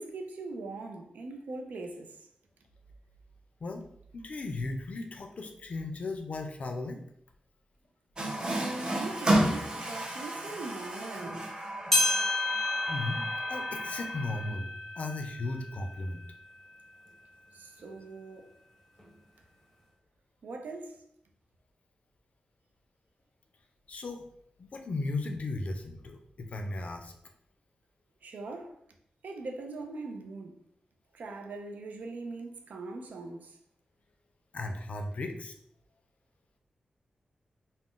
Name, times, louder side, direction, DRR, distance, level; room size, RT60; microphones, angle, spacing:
voice 1, 0.0-2.3 8.4-11.7 17.5-18.5 20.4-21.0 28.2-28.8 29.2-30.6 31.1-33.6, right 3 dB, 80° right, 0.4 m, -41 dB
voice 2, 4.1-7.0 12.9-13.2 13.5-16.2 23.9-24.2 24.6-27.1 34.5-35.5, left 2 dB, 55° left, 0.4 m, -36 dB
Water tap faucet, 8.2-14.5, right 1 dB, 30° right, 0.6 m, -32 dB
sound 1, 11.9-16.6 17.1-17.2 18.0-18.1 19.0-19.1, left 2 dB, 5° left, 0.7 m, -31 dB
2.4 x 2.0 x 3.6 m
wide cardioid pair, 85°, 3 cm